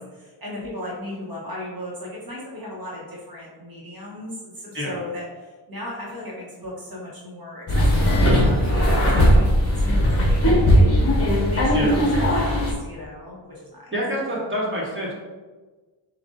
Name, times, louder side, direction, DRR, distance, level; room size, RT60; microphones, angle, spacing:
voice 1, 0.0-13.9, left 1 dB, 50° right, -5 dB, 1.2 m, -36 dB
sound 1, 7.7-12.7, equal, 30° left, 1.2 m, -18 dB
voice 2, 13.9-15.1, equal, 25° right, -4 dB, 1.5 m, -27 dB
7.1 x 2.5 x 2.7 m, 1.3 s
wide cardioid pair, 110°, 45 cm